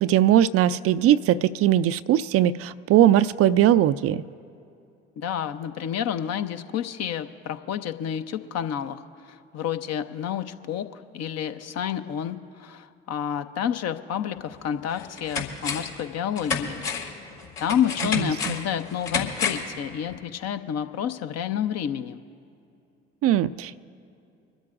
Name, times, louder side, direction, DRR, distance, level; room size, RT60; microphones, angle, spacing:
voice 1, 0.0-4.2 18.2-18.6 23.2-23.8, right 11 dB, 45° right, 14 dB, 0.5 m, -20 dB
voice 2, 5.2-16.8 17.6-22.2, left 9 dB, 50° left, 9 dB, 0.8 m, -29 dB
sound 1, 14.4-14.5 14.9-16.0 16.4-19.8 20.1-20.2, left 5 dB, 70° left, 2.2 m, -30 dB
25.5 x 12.5 x 2.5 m, 2.6 s
figure-of-eight pair, 55°, 33 cm